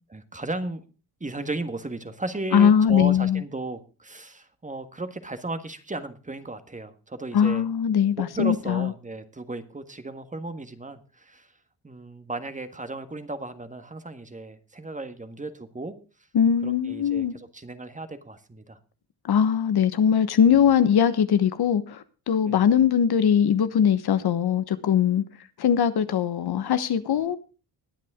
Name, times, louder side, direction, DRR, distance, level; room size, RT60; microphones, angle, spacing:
voice 1, 0.1-0.8 1.2-7.7 8.2-11.5 11.8-15.9 16.6-18.8 22.4-22.6, right 2 dB, 20° right, 1.6 m, -35 dB
voice 2, 2.5-3.4 7.3-8.9 16.3-17.3 19.2-25.2 25.6-27.4, left 8 dB, 65° left, 1.3 m, -21 dB
21.0 x 7.6 x 3.7 m
cardioid pair, 90°, 41 cm